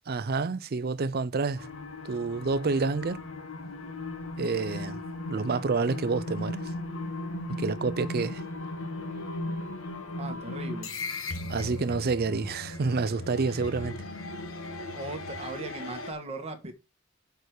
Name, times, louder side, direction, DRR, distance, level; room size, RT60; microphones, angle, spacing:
voice 1, 0.1-1.7 2.0-3.2 4.4-5.0 5.3-6.7 7.5-8.4 11.5-14.0, right 4 dB, 50° right, 0.5 m, -28 dB
sound 1, 1.5-16.1, left 2 dB, 70° left, 1.4 m, -37 dB
voice 2, 10.2-10.9 14.9-16.7, right 2 dB, 30° right, 1.6 m, -38 dB
6.8 x 4.6 x 6.6 m
head